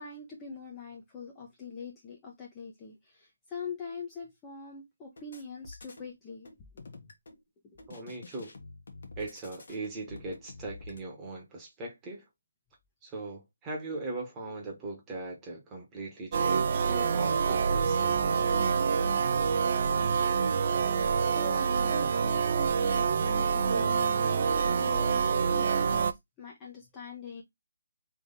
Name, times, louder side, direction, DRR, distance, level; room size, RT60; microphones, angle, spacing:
voice 1, 0.0-6.5 6.7-6.9 21.3-26.1 26.4-27.4, left 4 dB, 15° left, 0.8 m, -43 dB
sound 1, 5.2-6.1 6.5-7.4 7.8-11.0, left 3 dB, 55° left, 1.3 m, -48 dB
voice 2, 7.9-8.5 9.2-12.2 13.0-18.4, right 2 dB, 10° right, 1.2 m, -40 dB
sound 2, 16.3-26.1, right 6 dB, 40° right, 0.4 m, -26 dB
3.4 x 3.0 x 4.0 m
hypercardioid pair, 165°, 0 cm